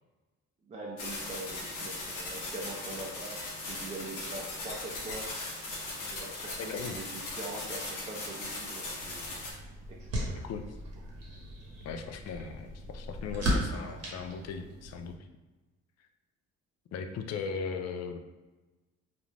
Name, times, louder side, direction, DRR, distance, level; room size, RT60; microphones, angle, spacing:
voice 1, 0.6-5.3 6.1-9.2 9.9-10.4, right 2 dB, 25° right, -2 dB, 0.5 m, -43 dB
sound 1, 1.0-9.5, left 2 dB, 80° left, 0.8 m, -39 dB
voice 2, 6.6-7.0 10.4-10.6 11.8-15.2 16.9-18.2, left 5 dB, 60° left, 6 dB, 0.4 m, -38 dB
sound 2, 9.0-15.1, equal, 55° right, 0.9 m, -37 dB
2.5 x 2.1 x 3.1 m, 1.2 s
cardioid pair, 90°, 30 cm